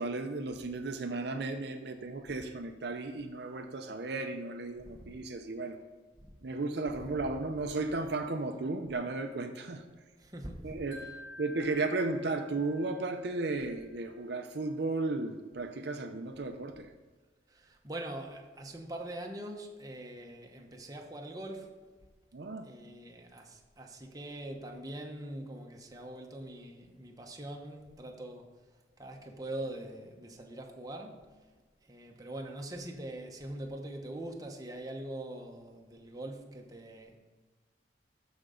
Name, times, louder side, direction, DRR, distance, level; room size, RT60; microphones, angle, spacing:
voice 1, 0.0-5.8 6.4-9.8 10.6-11.0 11.4-16.9 22.3-22.7, right 3 dB, 60° right, 0.6 m, -34 dB
voice 2, 10.2-11.1 17.5-21.7 22.6-28.5 29.0-31.3 31.9-37.2, right 1 dB, 20° right, 0.9 m, -43 dB
Wind chime, 10.9-14.0, left 1 dB, 75° left, 1.6 m, -51 dB
13.5 x 5.2 x 3.8 m
head